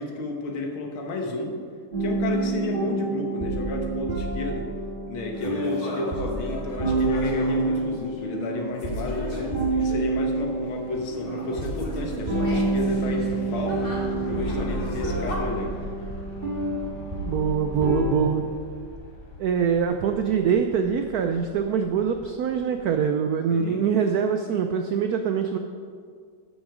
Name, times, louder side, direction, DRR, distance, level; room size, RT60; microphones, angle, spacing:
voice 1, 0.0-1.6 2.0-4.7 5.1-14.0 14.3-15.8 23.5-23.8, left 3 dB, 85° left, 2 dB, 2.1 m, -32 dB
sound 1, 1.9-18.1, right 2 dB, 25° right, 2.0 m, -28 dB
sound 2, 5.3-10.6 11.0-15.4, equal, 30° left, 1.5 m, -38 dB
sound 3, 8.0-23.0, left 2 dB, 60° left, 1.7 m, -41 dB
voice 2, 17.2-18.4 19.4-25.6, right 7 dB, 90° right, 6 dB, 0.8 m, -24 dB
12.0 x 6.3 x 5.0 m, 2.1 s
omnidirectional pair, 2.2 m